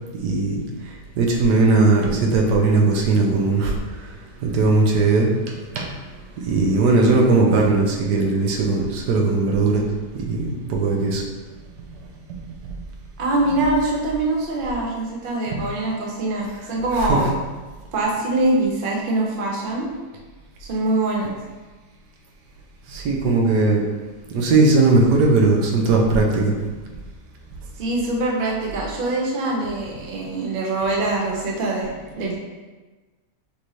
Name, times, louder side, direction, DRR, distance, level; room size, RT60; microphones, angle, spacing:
voice 1, 0.2-0.6 1.2-3.7 4.4-5.9 6.4-9.8 10.3-11.2 15.5-15.6 17.1-17.2 22.9-23.8 24.3-26.5, right 3 dB, 80° right, 0 dB, 1.3 m, -18 dB
voice 2, 13.2-17.4 17.9-19.9 20.6-21.3 27.8-32.4, right 2 dB, 50° right, -2 dB, 0.6 m, -23 dB
6.5 x 2.6 x 3.1 m, 1.3 s
omnidirectional pair, 1.8 m